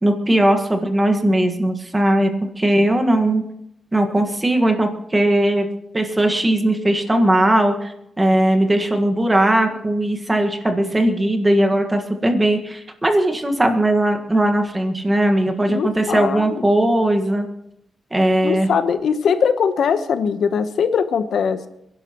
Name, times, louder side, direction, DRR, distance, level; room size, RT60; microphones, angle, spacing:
voice 1, 0.0-3.4 3.9-5.7 5.9-17.5 18.1-18.7, right 1 dB, 15° right, 5 dB, 1.6 m, -18 dB
voice 2, 15.7-16.6 18.4-21.7, left 6 dB, 75° left, 10 dB, 1.0 m, -21 dB
29.0 x 11.5 x 3.0 m, 0.81 s
wide cardioid pair, 160°, 0 cm